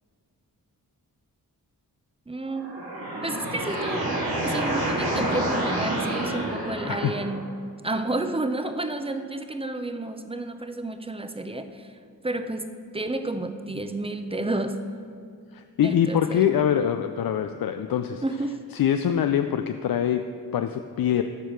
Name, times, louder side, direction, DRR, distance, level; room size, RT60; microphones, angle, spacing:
voice 1, 2.3-2.8 3.2-7.5 7.8-11.9 12.2-14.8 15.8-16.6 18.2-18.6, right 2 dB, 15° right, 8 dB, 0.7 m, -31 dB
sound 1, 2.5-7.4, right 1 dB, 70° right, 2.1 m, -28 dB
voice 2, 15.5-18.2 18.7-20.3 20.5-21.2, left 9 dB, 60° left, 7 dB, 0.5 m, -24 dB
13.5 x 4.6 x 4.5 m, 2.3 s
cardioid pair, 45°, 40 cm